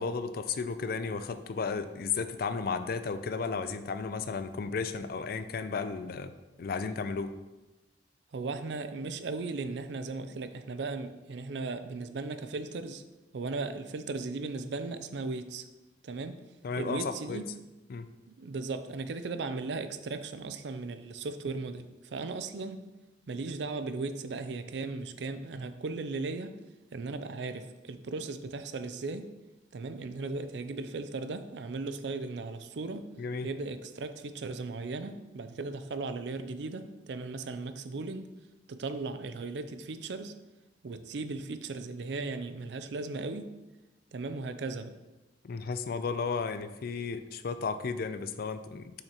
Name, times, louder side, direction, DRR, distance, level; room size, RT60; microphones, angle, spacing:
voice 1, 0.0-6.3 6.6-7.3 16.6-17.4 17.9-18.1 33.2-33.5 45.4-48.9, left 5 dB, 55° left, 11 dB, 0.4 m, -34 dB
voice 2, 8.3-13.0 13.3-15.6 16.0-16.4 16.8-17.5 18.3-22.8 23.3-26.6 26.9-29.3 29.7-33.1 33.4-38.3 38.7-40.3 40.8-43.5 44.1-45.0, right 3 dB, 65° right, 10 dB, 0.4 m, -37 dB
6.8 x 5.7 x 2.9 m, 1.1 s
head